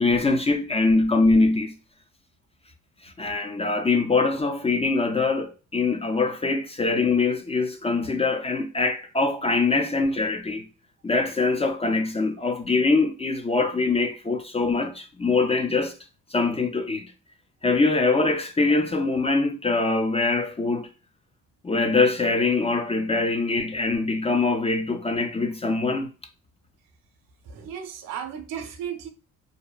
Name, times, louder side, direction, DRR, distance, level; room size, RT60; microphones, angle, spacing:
voice 1, 0.0-1.7 3.0-10.7 11.0-15.9 16.3-17.1 17.6-20.9 21.6-26.1, left 3 dB, 20° left, 0.4 m, -23 dB
voice 2, 27.4-29.1, right 8 dB, 80° right, 0.7 m, -35 dB
2.7 x 2.1 x 2.3 m
cardioid pair, 80°, 33 cm